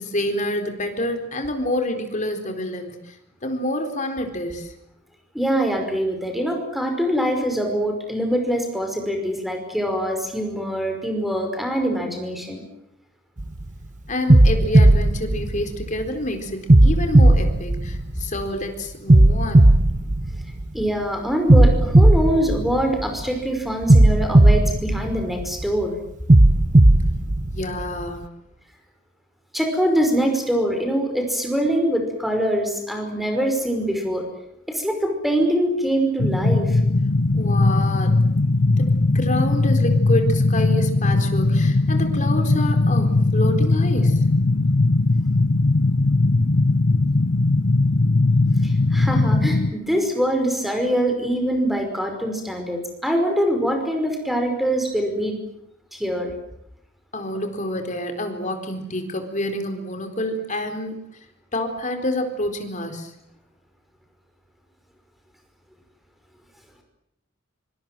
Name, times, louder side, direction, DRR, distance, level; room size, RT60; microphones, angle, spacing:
voice 1, 0.0-3.2 3.4-4.7 14.1-19.8 27.5-28.3 37.3-38.1 38.8-38.9 39.1-44.2 57.1-61.0 61.5-63.1, left 1 dB, 35° left, 6 dB, 4.2 m, -28 dB
voice 2, 5.3-12.6 20.7-25.9 29.5-34.3 34.7-36.8 48.6-55.4 55.9-56.3, equal, ahead, 4 dB, 5.2 m, -23 dB
sound 1, 13.4-13.7 14.3-16.1 16.7-18.5 19.1-20.9 21.5-23.3 23.9-25.7 26.3-28.1, right 1 dB, 35° right, 1.0 m, -15 dB
sound 2, 36.2-49.7, left 2 dB, 60° left, 1.0 m, -19 dB
25.5 x 25.5 x 7.7 m, 0.78 s
head